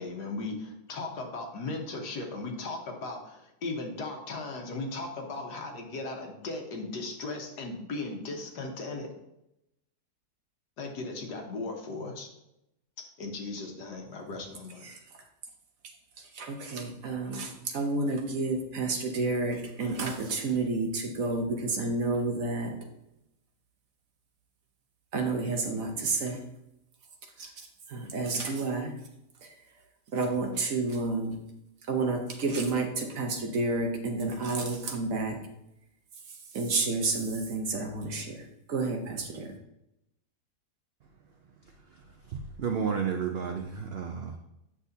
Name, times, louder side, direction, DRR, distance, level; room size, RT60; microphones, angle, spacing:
voice 1, 0.0-9.1 10.8-12.3 13.2-14.9, left 3 dB, 85° left, 2 dB, 1.7 m, -37 dB
voice 2, 16.2-22.8 25.1-26.4 27.4-29.0 29.4-29.5 30.1-31.4 31.9-35.4 36.3-39.6, right 3 dB, 60° right, 3 dB, 1.3 m, -30 dB
voice 3, 41.6-44.4, right 6 dB, 80° right, 4 dB, 0.5 m, -33 dB
8.5 x 6.1 x 2.7 m, 0.85 s
omnidirectional pair, 1.7 m